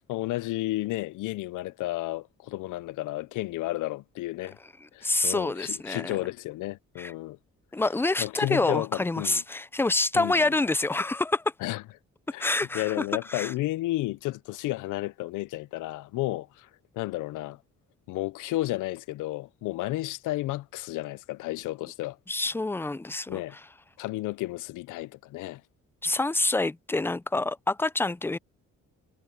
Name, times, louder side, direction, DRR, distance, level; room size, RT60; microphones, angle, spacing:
voice 1, 0.0-4.6 4.9-7.4 8.2-9.4 10.1-10.5 11.6-11.8 12.3-17.6 18.1-22.2 23.3-23.5 24.0-25.6, left 17 dB, 85° left, 0.5 m, -32 dB
voice 2, 5.0-6.1 7.0-7.1 7.7-11.4 12.4-12.9 13.3-13.5 22.3-23.4 26.0-28.4, left 2 dB, 10° left, 0.4 m, -27 dB
cardioid pair, 90°, 30 cm